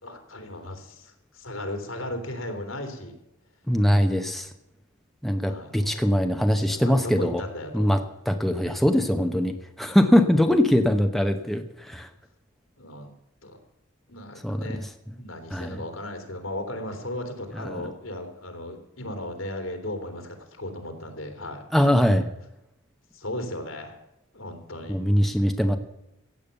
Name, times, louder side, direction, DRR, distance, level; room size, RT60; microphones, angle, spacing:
voice 1, 0.0-3.1 5.5-6.1 6.6-8.0 12.8-13.1 13.4-13.6 14.1-14.9 15.2-22.2 23.1-23.9 24.3-25.0, left 1 dB, 85° left, 6 dB, 3.2 m, -36 dB
voice 2, 3.7-4.5 5.2-7.4 7.7-8.0 8.3-12.1 14.4-14.7 15.5-15.8 17.6-17.8 21.7-22.2 24.9-25.8, equal, ahead, 6 dB, 0.9 m, -22 dB
15.5 x 8.6 x 6.8 m, 0.88 s
head